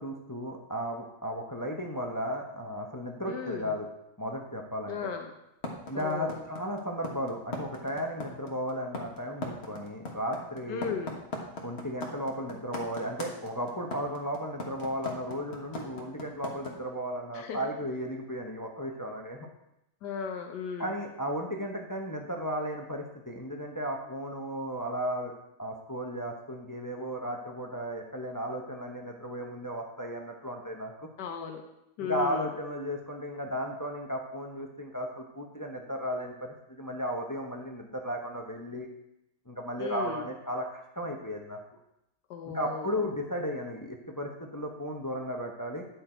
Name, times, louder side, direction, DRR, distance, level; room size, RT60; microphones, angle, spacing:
voice 1, 0.0-3.9 4.2-5.0 5.9-10.9 11.6-19.5 20.8-25.3 25.6-31.1 32.0-38.9 39.5-41.6 42.5-45.8, equal, 20° left, 2 dB, 0.6 m, -35 dB
voice 2, 3.3-3.7 4.9-5.3 5.9-6.4 10.7-11.2 17.3-17.6 20.0-20.9 31.2-31.6 32.0-32.4 39.8-40.2 42.3-42.9, left 6 dB, 90° left, 4 dB, 1.5 m, -36 dB
sound 1, 5.6-16.7, left 2 dB, 40° left, 1.5 m, -38 dB
9.9 x 6.9 x 4.4 m, 0.84 s
omnidirectional pair, 1.8 m